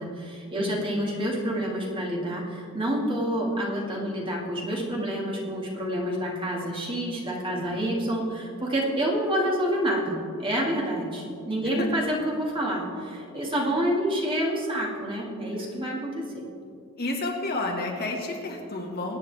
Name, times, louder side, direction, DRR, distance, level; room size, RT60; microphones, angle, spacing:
voice 1, 0.0-16.5, equal, 25° right, -2 dB, 2.1 m, -28 dB
voice 2, 0.6-1.0 7.4-7.7 11.6-11.9 15.6-15.7 17.0-19.2, left 2 dB, 45° left, 0 dB, 1.9 m, -31 dB
23.0 x 9.3 x 3.5 m, 2.5 s
head